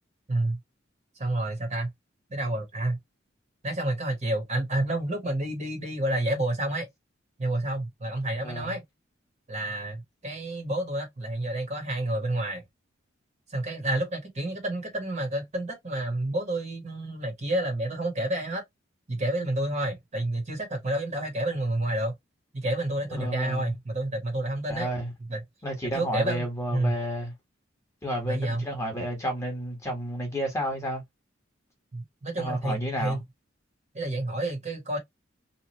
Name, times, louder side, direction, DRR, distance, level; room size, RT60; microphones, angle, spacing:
voice 1, 1.2-1.9 2.3-3.0 3.6-6.9 7.4-8.8 9.5-12.6 13.5-18.6 19.1-22.1 22.5-24.9 25.3-25.4 25.9-26.4 26.7-26.9 28.2-28.6 31.9-33.2 33.9-35.0, right 1 dB, 35° right, 1.2 m, -29 dB
voice 2, 8.4-8.8 23.1-23.8 24.7-25.1 25.6-27.3 28.0-31.0 32.4-33.2, equal, 15° left, 1.3 m, -31 dB
2.9 x 2.4 x 3.0 m
head